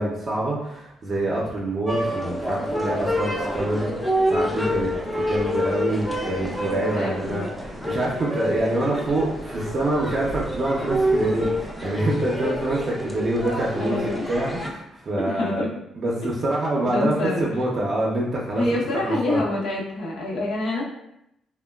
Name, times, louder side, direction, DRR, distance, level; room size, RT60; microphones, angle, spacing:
voice 1, 0.0-14.0 14.3-15.6 15.9-17.1 17.4-18.6 19.0-19.4, right 1 dB, 45° right, -4 dB, 0.5 m, -26 dB
sound 1, 1.9-14.7, equal, 10° left, 0.4 m, -27 dB
voice 2, 7.0-7.5 13.8-14.3 15.2-15.7 16.8-17.4 18.6-20.8, left 2 dB, 70° left, -3 dB, 0.7 m, -26 dB
2.9 x 2.1 x 2.2 m, 0.80 s
cardioid pair, 90°, 0 cm